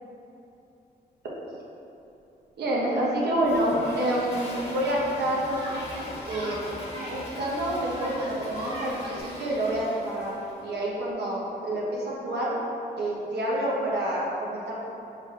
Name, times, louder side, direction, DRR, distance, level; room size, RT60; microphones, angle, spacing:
voice 1, 2.6-5.6 6.3-6.6 7.1-12.5 13.0-14.7, right 1 dB, 75° right, -5 dB, 1.0 m, -28 dB
Toilet flush, 3.4-10.6, equal, 35° left, 1.3 m, -39 dB
Yell, 4.0-4.2 5.5-7.2 7.9-9.2, equal, 30° right, 1.4 m, -38 dB
5.7 x 3.9 x 2.4 m, 2.9 s
cardioid pair, 80°, 17 cm